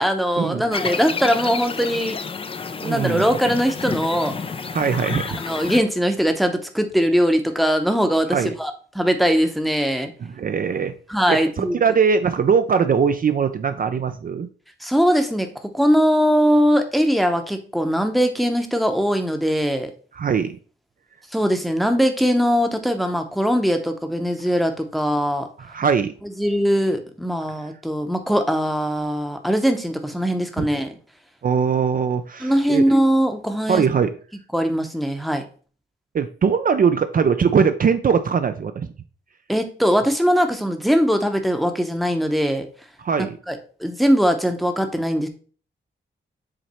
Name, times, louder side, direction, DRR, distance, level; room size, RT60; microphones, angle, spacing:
voice 1, 0.0-2.2 2.8-4.3 5.4-10.1 11.1-11.8 14.8-19.9 21.3-25.5 26.2-31.0 32.4-33.8 34.5-35.4 39.5-42.7 43.5-45.3, equal, ahead, 6 dB, 0.7 m, -21 dB
sound 1, 0.7-5.8, left 5 dB, 30° left, 0.3 m, -30 dB
voice 2, 2.8-3.3 4.7-5.4 8.3-8.6 10.4-10.9 11.3-14.5 20.1-20.6 25.6-26.1 30.6-30.7 31.4-32.8 33.7-34.1 36.1-38.9 43.0-43.4, right 6 dB, 45° right, 9 dB, 0.4 m, -21 dB
7.4 x 3.2 x 4.3 m, 0.41 s
wide cardioid pair, 145°, 20 cm